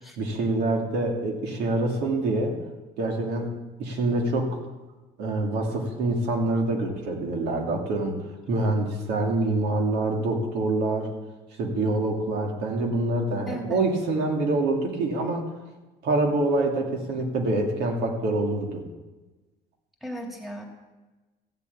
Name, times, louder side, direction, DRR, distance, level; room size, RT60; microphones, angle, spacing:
voice 1, 0.2-2.6 3.0-3.5 3.8-4.6 5.2-11.1 11.6-15.4 16.0-18.8, right 2 dB, 85° right, 1 dB, 2.8 m, -26 dB
voice 2, 13.5-13.8 20.0-20.6, equal, ahead, 2 dB, 2.8 m, -36 dB
15.0 x 7.5 x 8.7 m, 1.2 s
cardioid pair, 110°, 17 cm